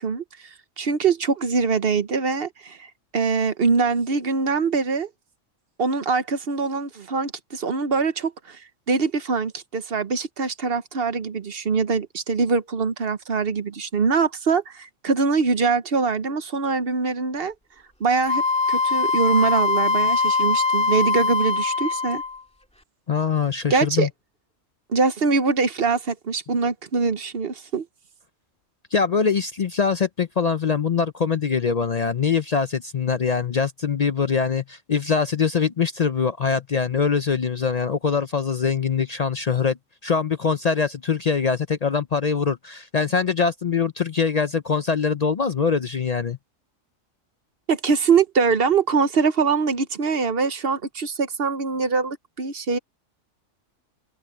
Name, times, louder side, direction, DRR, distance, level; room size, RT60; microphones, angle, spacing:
voice 1, 0.0-5.1 5.8-8.6 8.9-17.5 18.0-18.4 18.7-22.2 23.7-24.1 24.9-27.9 47.7-52.8, right 4 dB, 50° right, 1.0 m, -23 dB
Wind instrument woodwind instrument, 18.3-22.4, left 4 dB, 5° left, 2.0 m, -22 dB
voice 2, 23.1-24.1 28.9-46.4, left 6 dB, 50° left, 0.5 m, -23 dB
open air
omnidirectional pair, 1.3 m